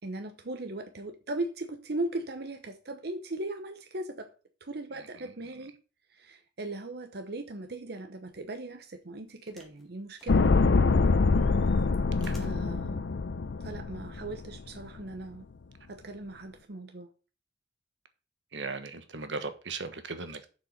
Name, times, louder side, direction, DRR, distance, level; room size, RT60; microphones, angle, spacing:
voice 1, 0.0-4.3 4.6-5.7 6.1-10.4 12.3-13.1 13.6-15.5 15.9-17.1, right 2 dB, 60° right, 0.9 m, -38 dB
sound 1, 8.3-8.5 9.5-9.8 10.2-10.9 11.3-12.8 13.7-13.8, equal, ahead, 2.3 m, -53 dB
sound 2, 10.3-14.6 14.8-14.9, left 4 dB, 75° left, 0.5 m, -25 dB
voice 2, 18.5-20.5, right 4 dB, 80° right, 1.3 m, -37 dB
7.4 x 6.4 x 6.5 m
head